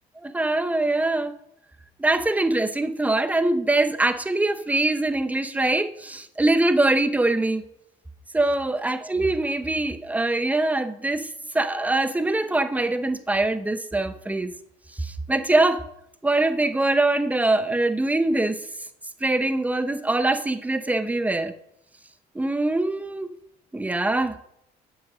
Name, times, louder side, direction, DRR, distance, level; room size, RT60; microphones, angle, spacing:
voice 1, 0.2-1.3 2.0-7.6 8.3-11.3 11.5-14.5 15.0-15.8 16.2-18.6 19.2-21.5 22.3-23.3 23.7-24.4, right 2 dB, 10° right, 0.8 m, -23 dB
8.0 x 8.0 x 6.2 m
cardioid pair, 110°, 17 cm